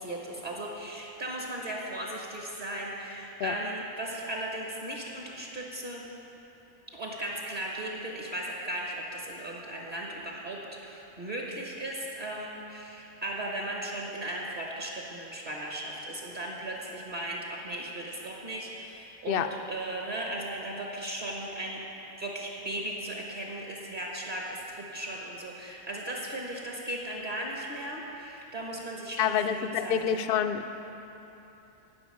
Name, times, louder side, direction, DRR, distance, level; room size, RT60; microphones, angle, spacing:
voice 1, 0.0-6.0 6.9-21.8 22.2-30.2, right 1 dB, 40° right, -2 dB, 1.4 m, -37 dB
voice 2, 29.2-30.6, left 9 dB, 60° left, 8 dB, 0.7 m, -27 dB
12.0 x 6.0 x 8.7 m, 2.9 s
omnidirectional pair, 1.3 m